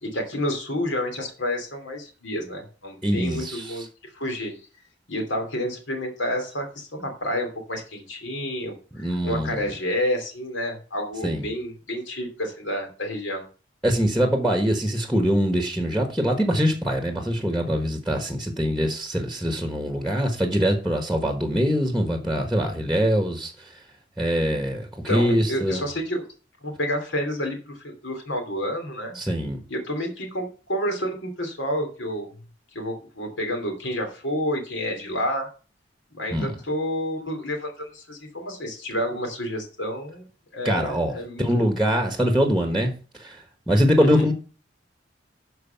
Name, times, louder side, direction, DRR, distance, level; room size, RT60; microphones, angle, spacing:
voice 1, 0.0-4.6 5.1-13.5 25.1-26.3 26.6-29.2 29.7-32.3 32.7-35.5 36.1-40.3 40.5-41.4 44.0-44.3, equal, 80° left, 2.9 m, -29 dB
voice 2, 3.0-3.8 8.9-9.7 11.2-11.5 13.8-23.7 24.2-25.8 29.1-29.6 36.3-36.5 40.6-44.3, equal, ahead, 1.3 m, -23 dB
13.0 x 4.7 x 5.8 m
head